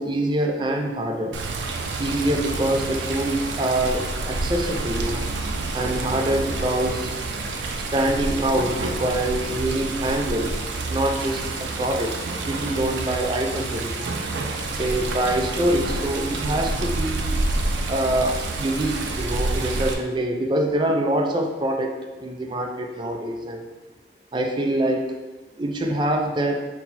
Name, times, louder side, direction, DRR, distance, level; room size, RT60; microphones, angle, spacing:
voice 1, 0.0-1.4 2.0-5.3 5.7-7.1 7.9-10.5 10.9-12.1 12.5-14.1 14.8-17.3 17.8-23.6 24.3-25.1 25.6-26.6, right 1 dB, 25° right, 3 dB, 0.3 m, -25 dB
Water, 1.3-19.9, right 2 dB, 85° right, 0.4 m, -28 dB
4.2 x 2.1 x 4.1 m, 1.2 s
head